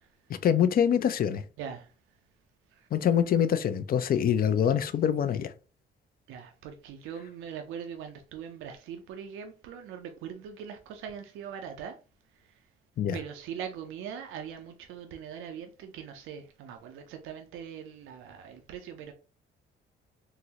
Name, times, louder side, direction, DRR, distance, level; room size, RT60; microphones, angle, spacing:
voice 1, 0.3-1.4 2.9-5.5 13.0-13.2, left 9 dB, 50° left, 0.4 m, -25 dB
voice 2, 6.3-12.0 13.1-19.1, right 8 dB, 90° right, 0.5 m, -41 dB
3.7 x 2.0 x 2.8 m
cardioid pair, 90°, 20 cm